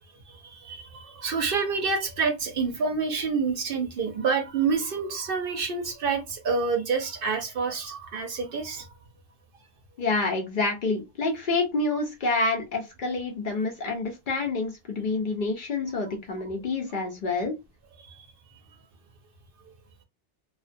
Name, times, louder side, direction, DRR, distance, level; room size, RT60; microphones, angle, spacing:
voice 1, 0.3-8.9 18.0-18.3, right 5 dB, 60° right, 0.7 m, -28 dB
voice 2, 10.0-17.5, left 3 dB, 55° left, 0.6 m, -28 dB
2.3 x 2.1 x 2.5 m
omnidirectional pair, 1.2 m